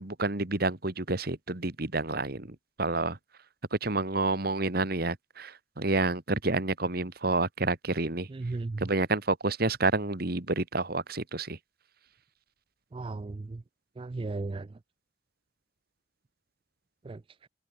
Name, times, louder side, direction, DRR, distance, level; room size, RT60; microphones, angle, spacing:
voice 1, 0.0-2.5 2.8-3.2 3.8-8.3 8.8-11.6, right 2 dB, 50° right, 1.7 m, -29 dB
voice 2, 8.3-8.9 12.9-13.6 14.0-14.7 17.1-17.2, right 3 dB, 25° right, 0.3 m, -35 dB
open air
head